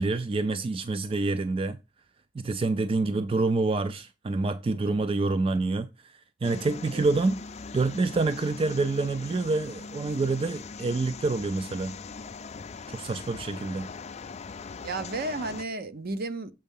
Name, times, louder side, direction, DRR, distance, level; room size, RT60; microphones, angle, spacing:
voice 1, 0.0-1.8 2.4-7.4 7.7-12.0 12.9-13.9, right 3 dB, 30° right, 0.3 m, -27 dB
sound 1, 6.4-15.6, left 4 dB, 35° left, 0.4 m, -41 dB
voice 2, 14.8-16.5, right 2 dB, 50° right, 0.7 m, -33 dB
7.6 x 4.5 x 5.4 m
head